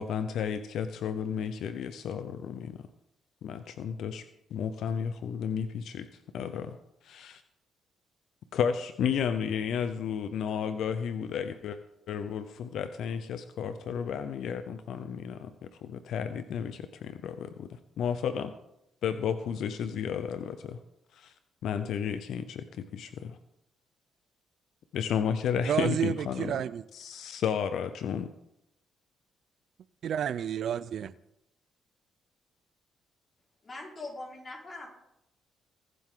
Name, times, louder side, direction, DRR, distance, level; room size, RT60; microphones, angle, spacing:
voice 1, 0.0-2.8 3.4-4.2 4.5-6.1 6.3-6.8 7.0-7.4 8.5-11.8 12.1-18.5 19.0-20.8 21.1-21.3 21.6-23.4 24.9-26.5 26.9-28.3, left 7 dB, 75° left, 0.7 m, -32 dB
voice 2, 25.6-26.8 30.0-31.1, right 9 dB, 65° right, 0.5 m, -30 dB
voice 3, 33.6-34.9, left 2 dB, 30° left, 4.7 m, -41 dB
22.5 x 7.7 x 3.8 m
cardioid pair, 90°, 0 cm